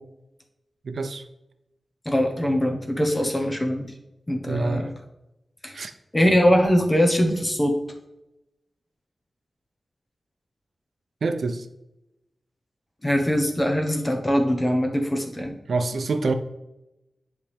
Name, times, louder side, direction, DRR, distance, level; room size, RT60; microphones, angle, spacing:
voice 1, 0.8-1.3 4.5-4.9 5.7-5.9 7.3-7.4 11.2-11.7 15.7-16.3, right 3 dB, 70° right, 8 dB, 0.6 m, -26 dB
voice 2, 2.1-3.9 4.3-4.9 5.6-5.7 6.1-7.7 13.0-15.5, equal, 20° left, 3 dB, 1.0 m, -22 dB
10.0 x 3.4 x 3.5 m, 0.90 s
wide cardioid pair, 140°, 0 cm